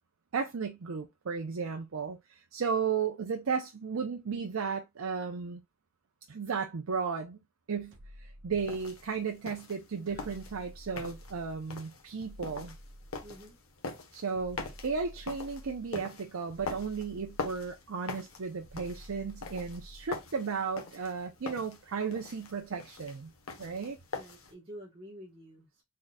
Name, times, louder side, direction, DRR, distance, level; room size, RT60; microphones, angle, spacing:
voice 1, 0.3-5.6 6.3-7.4 7.7-12.7 14.1-23.3 23.6-24.0, right 5 dB, 90° right, 0.6 m, -34 dB
sound 1, 7.9-9.2 10.1-11.7 12.2-13.6 14.3-15.9 16.5-17.9 18.6-20.2, equal, 60° right, 1.1 m, -51 dB
sound 2, 8.6-24.5, left 4 dB, 85° left, 1.1 m, -44 dB
voice 2, 13.2-13.6 24.1-25.8, equal, 25° right, 1.2 m, -49 dB
4.1 x 3.8 x 2.2 m
head